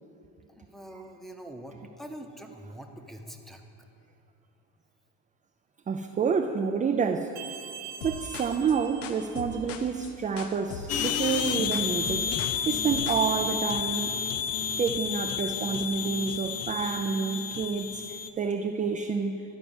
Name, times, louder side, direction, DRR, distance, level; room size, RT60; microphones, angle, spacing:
voice 1, 0.5-3.6, right 1 dB, ahead, 2 dB, 0.8 m, -44 dB
voice 2, 5.9-7.3 8.0-14.1 14.8-19.4, right 5 dB, 20° right, 5 dB, 0.4 m, -29 dB
sound 1, 7.4-9.9, right 8 dB, 80° right, 1.2 m, -44 dB
sound 2, 8.0-13.3, left 5 dB, 85° left, 0.7 m, -40 dB
sound 3, 10.9-18.3, left 7 dB, 40° left, 0.5 m, -31 dB
11.0 x 4.6 x 7.1 m, 2.6 s
supercardioid pair, 90°, 38 cm